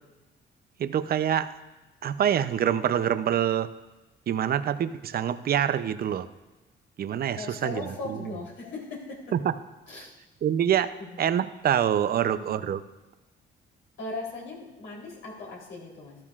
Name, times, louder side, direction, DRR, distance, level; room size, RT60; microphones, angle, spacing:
voice 1, 0.8-1.5 2.0-3.7 4.3-6.3 7.0-8.3 9.3-9.5 9.9-10.0 10.4-10.9 11.2-12.8, right 9 dB, 50° right, 13 dB, 0.5 m, -26 dB
voice 2, 7.4-9.2 9.9-10.1 11.0-11.2 12.2-12.5 14.0-16.2, left 3 dB, 80° left, -3 dB, 3.4 m, -38 dB
13.0 x 12.0 x 2.4 m, 1.1 s
cardioid pair, 90°, 20 cm